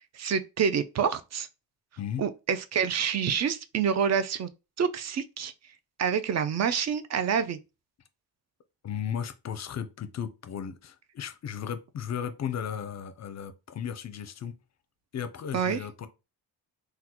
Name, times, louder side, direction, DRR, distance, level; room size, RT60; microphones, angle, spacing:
voice 1, 0.1-1.5 2.2-4.5 4.8-5.5 6.0-7.6 15.5-15.8, right 7 dB, 40° right, 0.4 m, -27 dB
voice 2, 8.8-14.5 15.1-16.1, left 8 dB, 40° left, 0.5 m, -35 dB
3.7 x 2.3 x 2.9 m
cardioid pair, 100°, 40 cm